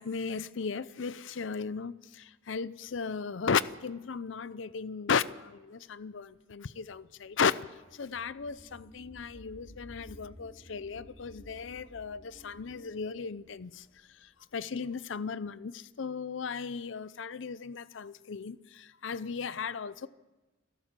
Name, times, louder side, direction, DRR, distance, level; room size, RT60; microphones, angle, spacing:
voice 1, 0.0-7.7 7.9-20.1, left 5 dB, 75° left, 0.6 m, -35 dB
sound 1, 6.0-15.0, equal, 20° right, 3.1 m, -54 dB
29.5 x 12.0 x 7.4 m
head